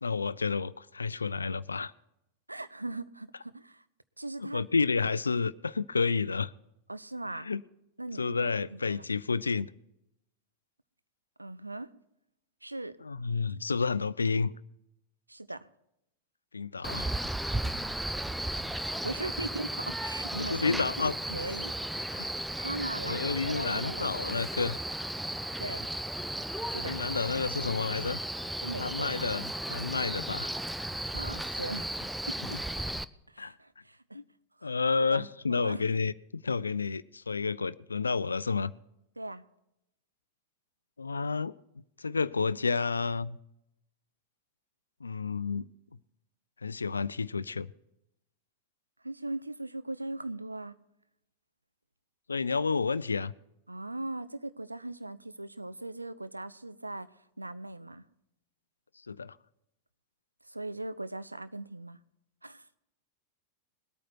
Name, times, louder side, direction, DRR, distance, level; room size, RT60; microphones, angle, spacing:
voice 1, 0.0-1.9 4.4-6.5 7.3-7.6 8.2-9.7 13.0-14.5 16.5-17.1 20.4-21.2 22.1-22.3 23.1-24.8 26.8-28.2 28.8-30.5 32.5-32.6 33.4-33.5 34.1-34.2 34.6-38.7 41.0-41.5 42.0-43.4 45.0-45.7 46.6-47.7 52.3-53.3 59.1-59.3, left 4 dB, 75° left, 0.4 m, -30 dB
voice 2, 2.5-3.8 4.2-4.6 6.9-7.5 8.0-9.1 11.4-11.9 12.6-13.0 15.3-15.7 19.0-21.7 22.6-24.1 25.6-25.9 26.7-27.0 28.6-29.3 31.0-32.6 33.3-34.2 34.6-34.7 35.0-35.3 35.6-35.9 39.2-39.4 49.0-50.7 53.7-58.0 60.5-62.0 62.4-62.6, right 2 dB, 85° right, 0.5 m, -39 dB
Male speech man speaking, 16.8-33.0, right 1 dB, ahead, 0.4 m, -35 dB
20.5 x 8.8 x 4.5 m
figure-of-eight pair, 90°, 0 cm